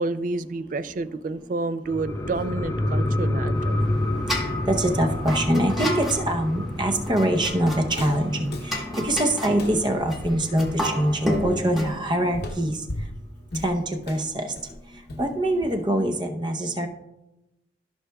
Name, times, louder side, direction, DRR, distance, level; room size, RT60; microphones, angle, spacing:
voice 1, 0.0-3.8, right 3 dB, 45° right, 14 dB, 0.4 m, -29 dB
sound 1, 1.9-11.0 11.3-11.4, left 1 dB, 15° left, 0.4 m, -29 dB
sound 2, 3.5-11.9, equal, ahead, 1.2 m, -32 dB
voice 2, 4.7-12.8 13.6-14.5 15.2-16.9, right 1 dB, 25° right, 4 dB, 0.7 m, -24 dB
Walk footsteps, 6.8-16.0, left 1 dB, 60° left, 0.8 m, -38 dB
14.0 x 5.9 x 2.3 m, 0.94 s
head